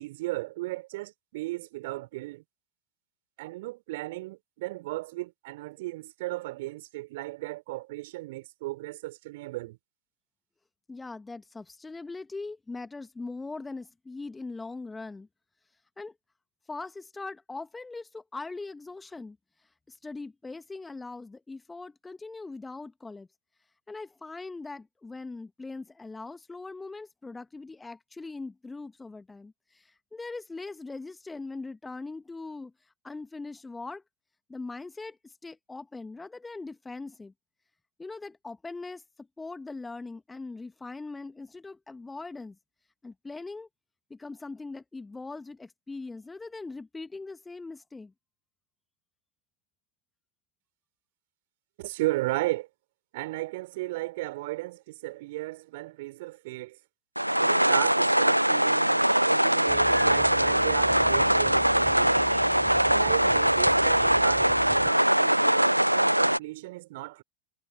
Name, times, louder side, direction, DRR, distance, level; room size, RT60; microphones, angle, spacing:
voice 1, 0.0-2.4 3.4-9.8 51.8-52.7 53.1-56.8 57.4-62.2 62.9-67.2, right 19 dB, 50° right, 5.4 m, -35 dB
voice 2, 10.9-15.3 16.0-16.1 16.7-23.3 23.9-34.0 34.5-37.3 38.0-42.6 43.0-43.7 44.1-48.1, left 3 dB, 10° left, 1.7 m, -41 dB
sound 1, 57.2-66.4, right 1 dB, 90° right, 0.8 m, -22 dB
sound 2, 59.7-64.9, right 3 dB, 10° right, 8.0 m, -42 dB
figure-of-eight pair, 90°, 0 cm